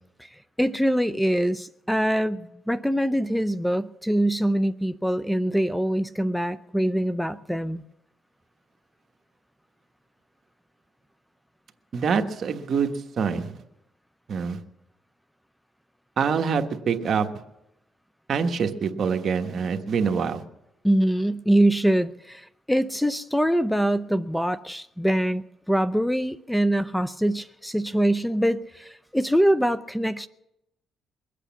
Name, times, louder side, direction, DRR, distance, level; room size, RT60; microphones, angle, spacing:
voice 1, 0.6-7.8 20.8-30.3, right 1 dB, 5° left, 13 dB, 0.5 m, -24 dB
voice 2, 11.9-13.5 14.3-14.6 16.2-17.3 18.3-20.4, right 6 dB, 55° right, 6 dB, 1.3 m, -25 dB
22.5 x 8.4 x 7.2 m, 0.86 s
cardioid pair, 90°, 0 cm